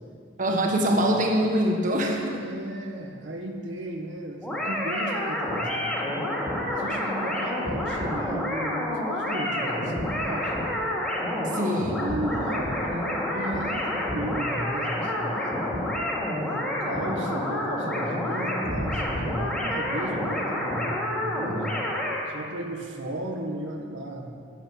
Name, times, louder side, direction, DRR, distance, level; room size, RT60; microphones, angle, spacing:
voice 1, 0.4-2.4 11.5-11.9, equal, 45° right, 1 dB, 1.4 m, -24 dB
voice 2, 2.4-6.0 6.7-10.6 11.3-15.6 16.3-21.7 22.3-24.4, right 1 dB, 80° right, 2 dB, 1.6 m, -35 dB
sound 1, 4.4-22.2, left 1 dB, 5° left, 2.6 m, -28 dB
10.0 x 8.6 x 9.9 m, 2.3 s
head